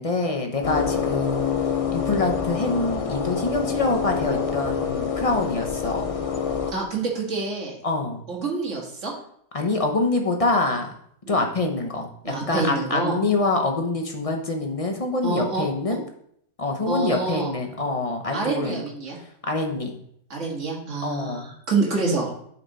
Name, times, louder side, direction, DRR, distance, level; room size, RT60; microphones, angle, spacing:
voice 1, 0.0-1.5 1.9-6.1 7.8-8.2 9.5-10.9 11.3-16.0 16.6-18.8 19.5-20.0 21.0-21.4, left 3 dB, 30° left, 3 dB, 0.8 m, -25 dB
sound 1, 0.6-6.7, left 6 dB, 60° left, 0.3 m, -26 dB
voice 2, 6.7-7.8 8.3-9.1 11.2-11.5 12.2-13.2 15.2-15.7 16.9-17.5 18.3-19.2 20.3-22.3, right 3 dB, 55° right, -2 dB, 2.1 m, -27 dB
9.7 x 4.4 x 4.0 m, 0.69 s
omnidirectional pair, 1.5 m